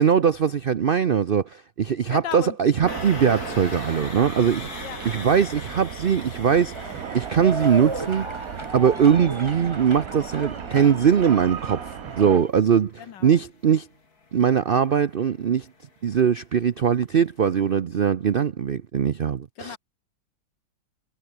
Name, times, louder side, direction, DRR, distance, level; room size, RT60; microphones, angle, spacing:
voice 1, 0.0-6.7 7.1-8.3 8.7-13.9 14.3-15.7 16.0-19.8, right 7 dB, 85° right, 0.4 m, -21 dB
voice 2, 2.1-2.6 4.8-5.0 13.0-13.4 19.6-19.8, left 10 dB, 80° left, 1.9 m, -35 dB
sound 1, 2.8-12.4, right 9 dB, 55° right, 1.4 m, -36 dB
sound 2, 2.9-16.9 17.2-17.5 17.8-17.9, left 4 dB, 55° left, 3.7 m, -42 dB
sound 3, 6.7-12.5, right 2 dB, 15° right, 2.0 m, -35 dB
omnidirectional pair, 1.9 m